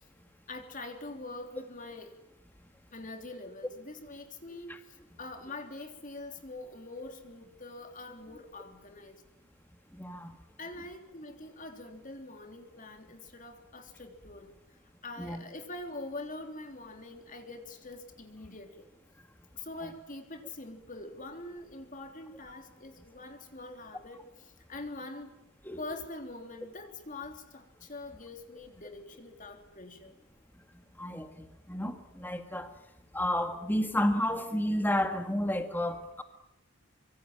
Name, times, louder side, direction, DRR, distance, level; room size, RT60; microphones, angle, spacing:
voice 1, 0.5-2.2 2.9-9.2 10.6-14.5 15.0-18.9 19.5-25.3 25.8-30.1, left 2 dB, 35° left, 5 dB, 3.3 m, -44 dB
voice 2, 9.9-10.3 15.2-15.4 19.8-19.9 25.6-25.8 31.0-32.7 33.1-36.2, left 1 dB, 10° left, 7 dB, 1.8 m, -31 dB
25.5 x 24.5 x 9.0 m, 0.86 s
head